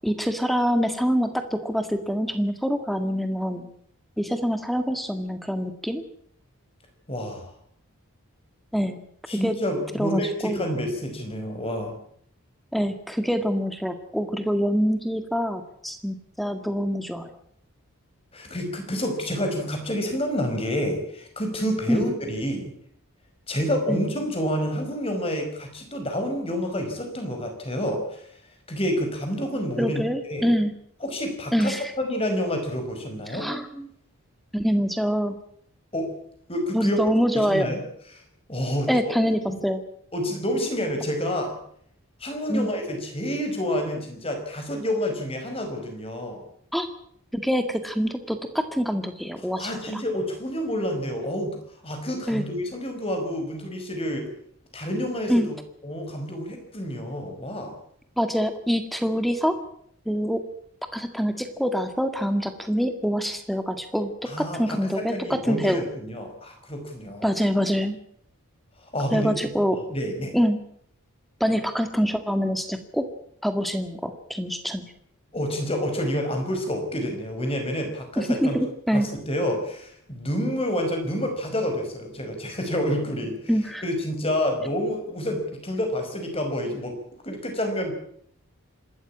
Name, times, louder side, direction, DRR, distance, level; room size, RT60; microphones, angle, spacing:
voice 1, 0.0-3.7 4.2-6.0 8.7-9.0 9.4-9.6 9.9-10.6 12.7-17.3 21.9-22.0 23.9-24.0 29.8-30.7 31.5-31.8 33.3-33.9 34.5-35.4 36.7-37.7 38.9-39.8 42.5-42.7 46.7-46.9 47.3-49.7 52.3-52.4 55.3-55.5 58.2-59.6 60.0-60.4 60.9-65.8 67.2-68.0 69.1-69.8 70.3-70.6 71.4-73.0 73.4-74.8 78.2-79.1 83.5-83.8, equal, ahead, 8 dB, 1.8 m, -25 dB
voice 2, 7.1-7.5 9.3-11.9 18.3-22.7 23.5-28.3 28.7-30.5 31.0-33.5 35.9-36.1 36.5-37.0 37.5-37.8 38.1-38.2 38.5-39.1 39.5-39.6 40.1-41.6 42.2-46.4 49.6-51.6 51.8-54.3 54.7-55.6 55.8-57.7 64.2-67.4 68.8-69.3 69.9-70.3 75.3-78.6 78.9-83.3 83.8-86.9 87.2-87.9, equal, 25° left, 5 dB, 5.1 m, -28 dB
27.0 x 13.0 x 8.7 m, 0.67 s
head